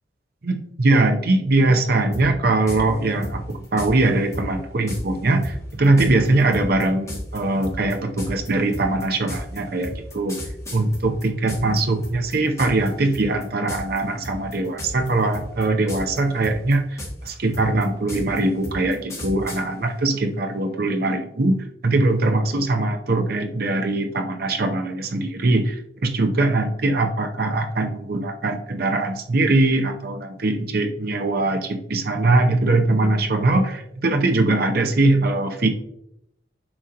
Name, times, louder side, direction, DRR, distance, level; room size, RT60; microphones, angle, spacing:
voice 1, 0.4-10.4 10.7-35.7, right 2 dB, 60° right, 6 dB, 0.7 m, -21 dB
sound 1, 2.1-2.2 2.7-2.8 3.2-3.9 4.3-4.5 4.9-5.0 5.4-11.8 12.0-12.9 13.1-13.4 13.7-14.0 14.2-15.1 15.3-16.2 16.4-19.6, left 1 dB, 15° left, 2.3 m, -33 dB
8.7 x 6.3 x 2.9 m, 0.80 s
head